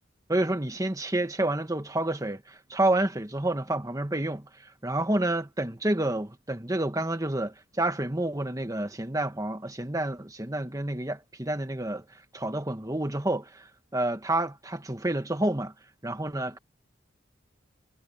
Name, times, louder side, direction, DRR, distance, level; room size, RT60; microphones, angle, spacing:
voice 1, 0.3-4.5 4.8-12.0 12.3-13.6 13.9-15.7 16.0-16.6, right 1 dB, 15° right, 1.4 m, -29 dB
head